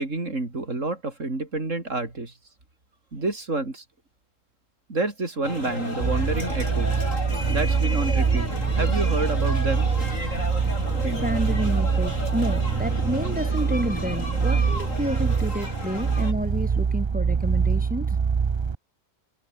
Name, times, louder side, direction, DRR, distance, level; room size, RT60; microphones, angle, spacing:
voice 1, 0.0-2.3 3.1-3.8 4.9-7.0 7.5-8.5 8.8-9.9, right 2 dB, 70° right, 4.6 m, -28 dB
sound 1, 5.4-16.3, left 1 dB, 80° left, 8.3 m, -33 dB
sound 2, 6.0-18.7, right 6 dB, 45° right, 0.3 m, -24 dB
voice 2, 11.0-18.2, equal, 5° right, 5.7 m, -30 dB
omnidirectional pair, 1.3 m